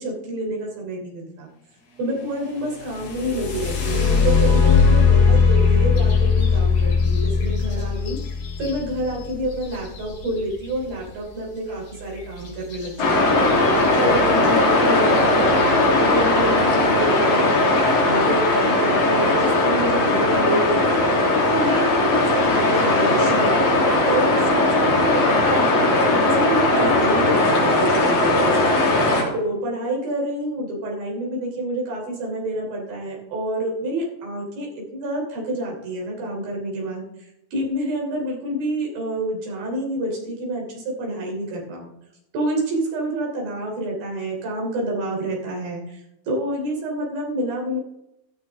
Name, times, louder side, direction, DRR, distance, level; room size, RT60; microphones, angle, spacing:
voice 1, 0.0-1.5 2.0-8.2 8.6-13.5 14.0-15.7 16.0-17.6 18.0-29.1 29.3-37.0 37.5-41.9 42.3-46.0 46.3-47.8, right 1 dB, 85° right, -1 dB, 5.1 m, -28 dB
sound 1, 2.8-10.6 12.7-12.9 13.3-13.9 14.5-14.6 15.1-15.4, left 5 dB, 55° left, 3.9 m, -19 dB
sound 2, 13.0-29.2, left 2 dB, 75° left, 4.6 m, -18 dB
15.0 x 13.5 x 3.5 m, 0.86 s
omnidirectional pair, 4.0 m